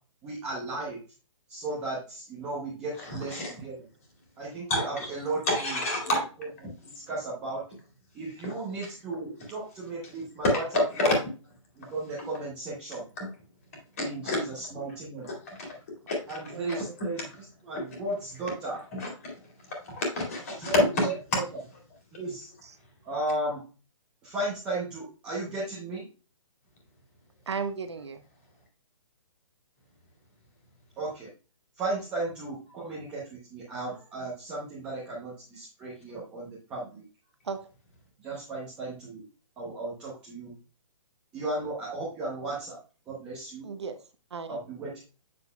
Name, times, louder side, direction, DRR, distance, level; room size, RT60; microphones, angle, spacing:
voice 1, 0.2-1.0 1.5-3.7 4.4-5.8 6.6-7.6 8.1-11.2 11.8-13.0 14.0-15.3 16.3-17.2 17.6-18.8 20.6-20.8 21.0-21.4 22.1-22.5 23.0-23.6 24.2-26.1 31.0-31.3 31.8-33.2 33.5-37.0 38.2-39.2 39.6-40.5 41.3-42.8 43.1-43.7 44.5-45.0, right 2 dB, 5° right, -7 dB, 0.8 m, -35 dB
voice 2, 3.0-3.5 4.7-5.1 5.5-6.2 8.4-8.5 10.4-11.2 13.2-13.3 14.2-14.4 15.2-15.8 16.1-16.8 18.9-19.1 19.7-21.4, left 2 dB, 25° left, 0 dB, 2.2 m, -28 dB
voice 3, 16.5-17.0 22.6-22.7 27.5-28.2 37.4-37.6 43.6-44.0 44.3-44.6, right 5 dB, 55° right, 9 dB, 0.8 m, -35 dB
7.7 x 6.0 x 2.3 m, 0.35 s
hypercardioid pair, 180°, 17 cm